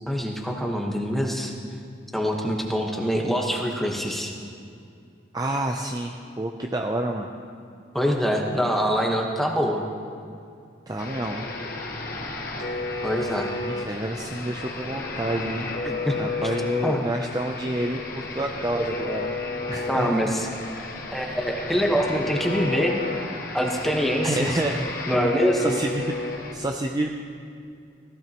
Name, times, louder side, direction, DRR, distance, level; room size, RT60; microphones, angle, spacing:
voice 1, 0.1-1.5 2.1-4.3 7.9-9.8 13.0-13.5 15.8-16.5 16.8-17.0 19.9-20.5 21.1-23.0 23.5-24.5 25.1-25.8, equal, ahead, 0 dB, 1.2 m, -24 dB
voice 2, 5.3-7.3 10.9-11.5 13.7-15.7 16.2-19.4 19.7-20.3 24.2-25.3 25.6-27.1, right 1 dB, 20° right, 2 dB, 0.5 m, -29 dB
sound 1, 11.0-26.5, left 3 dB, 50° left, 1.3 m, -32 dB
16.5 x 15.5 x 3.0 m, 2.4 s
head